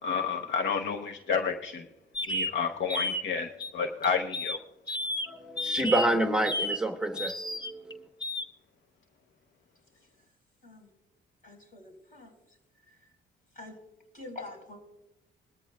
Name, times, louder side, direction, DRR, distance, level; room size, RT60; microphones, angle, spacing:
voice 1, 0.0-1.9 2.3-4.6, left 6 dB, 65° left, 6 dB, 0.8 m, -30 dB
sound 1, 2.1-2.5 2.9-3.2 3.6-3.7 4.0-4.6 4.9-5.3 5.6-6.1 6.4-6.8 7.1-7.9 8.2-8.4, left 1 dB, 20° left, 0.9 m, -32 dB
voice 2, 5.3-8.1, right 1 dB, 5° right, 5 dB, 0.9 m, -28 dB
voice 3, 11.4-12.6 12.9-13.1 13.5-13.8 14.1-14.8, left 2 dB, 40° left, 3 dB, 4.0 m, -46 dB
20.5 x 13.5 x 2.2 m, 0.91 s
cardioid pair, 90°, 20 cm